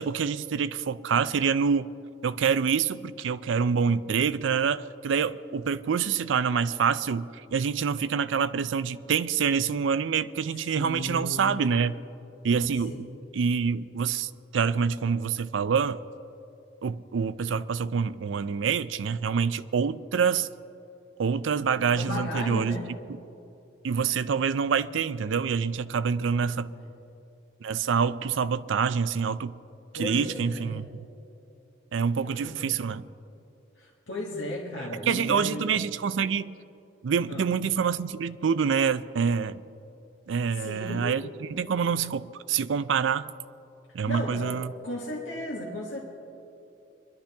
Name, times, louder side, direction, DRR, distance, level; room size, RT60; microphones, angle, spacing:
voice 1, 0.0-1.9 2.2-11.9 12.4-16.0 16.8-20.5 21.2-22.8 23.8-26.7 27.6-29.6 29.9-30.9 31.9-33.1 35.1-36.5 37.0-39.6 40.3-43.3 43.9-44.7, right 6 dB, 80° right, 15 dB, 0.4 m, -26 dB
voice 2, 10.7-11.9 12.9-13.1 21.9-22.9 26.4-26.9 29.9-30.8 32.2-32.7 33.8-35.7 37.3-37.4 40.5-41.2 44.1-44.5 44.8-46.0, left 1 dB, 90° left, -3 dB, 1.5 m, -35 dB
23.5 x 11.5 x 3.5 m, 2.8 s
head